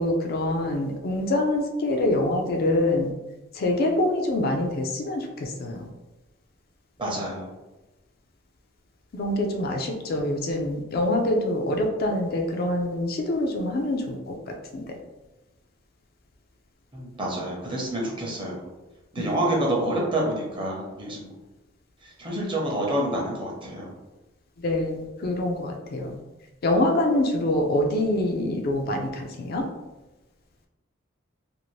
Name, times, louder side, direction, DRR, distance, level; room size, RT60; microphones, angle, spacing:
voice 1, 0.0-3.1 3.5-5.8 9.1-14.9 19.2-19.3 24.6-26.2 26.6-29.6, left 1 dB, 50° left, 2 dB, 0.4 m, -25 dB
voice 2, 7.0-7.5 16.9-18.6 19.1-21.3 22.0-23.9, right 1 dB, 25° right, -2 dB, 0.7 m, -28 dB
2.6 x 2.5 x 3.1 m, 1.1 s
head